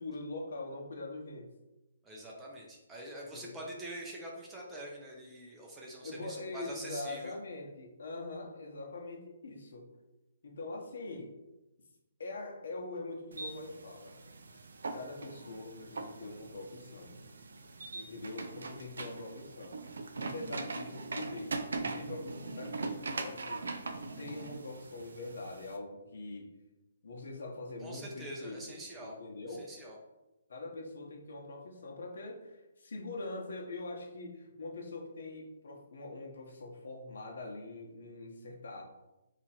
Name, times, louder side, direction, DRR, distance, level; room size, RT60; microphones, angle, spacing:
voice 1, 0.0-1.5 3.3-3.6 6.0-9.9 10.4-11.3 12.2-14.2 14.9-17.1 17.9-23.7 24.2-26.5 27.0-29.7 30.5-38.8, left 2 dB, 70° left, 0 dB, 0.9 m, -43 dB
voice 2, 2.0-7.4 27.8-29.2 29.5-30.0, right 1 dB, 10° right, -2 dB, 0.5 m, -45 dB
sound 1, 13.3-25.8, right 3 dB, 90° right, 0.4 m, -41 dB
2.9 x 2.5 x 4.2 m, 1.0 s
hypercardioid pair, 165°, 0 cm